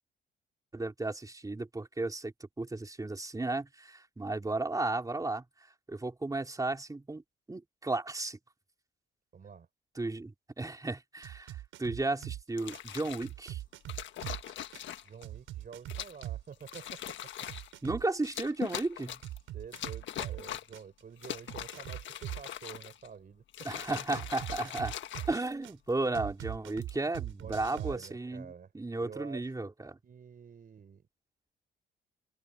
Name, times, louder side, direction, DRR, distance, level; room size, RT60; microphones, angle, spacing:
voice 1, 0.7-7.2 7.5-8.4 10.0-13.6 17.8-19.2 23.6-25.0 25.3-30.0, right 2 dB, 15° right, 3.6 m, -34 dB
voice 2, 9.3-9.7 15.0-17.2 19.5-23.4 23.7-23.8 27.4-28.7 29.0-29.5 30.0-31.0, right 6 dB, 45° right, 4.7 m, -49 dB
sound 1, 11.2-12.4 12.7-16.4 16.7-20.4 20.7-22.5 24.1-25.7 26.1-28.1, right 14 dB, 85° right, 7.8 m, -41 dB
sound 2, 12.5-13.3 13.9-15.2 15.9-16.3 16.6-17.7 18.2-19.4 19.7-20.8 21.2-23.1 23.5-25.9 26.6-27.0, left 11 dB, 75° left, 1.5 m, -41 dB
cardioid pair, 90°, 20 cm